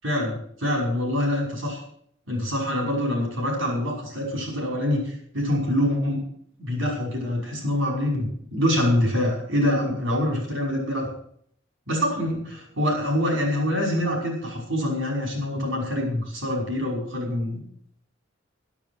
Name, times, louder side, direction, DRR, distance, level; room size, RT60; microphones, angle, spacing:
voice 1, 0.0-1.8 2.3-6.2 6.6-11.1 11.9-17.6, left 1 dB, 90° right, -1 dB, 5.7 m, -25 dB
12.5 x 12.0 x 6.4 m, 0.65 s
head